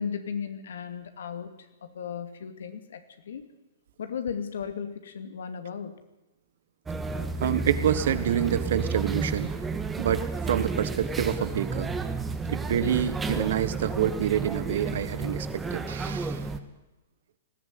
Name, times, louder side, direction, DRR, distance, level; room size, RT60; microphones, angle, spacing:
voice 1, 0.0-1.5 1.8-3.4 4.0-6.0, left 7 dB, 75° left, 9 dB, 2.4 m, -35 dB
sound 1, 6.9-16.6, right 4 dB, 15° right, 1.7 m, -31 dB
voice 2, 7.4-9.7 10.0-11.9 12.5-16.4, right 9 dB, 65° right, 13 dB, 1.5 m, -27 dB
19.5 x 14.5 x 9.5 m, 0.99 s
hypercardioid pair, 120°, 0 cm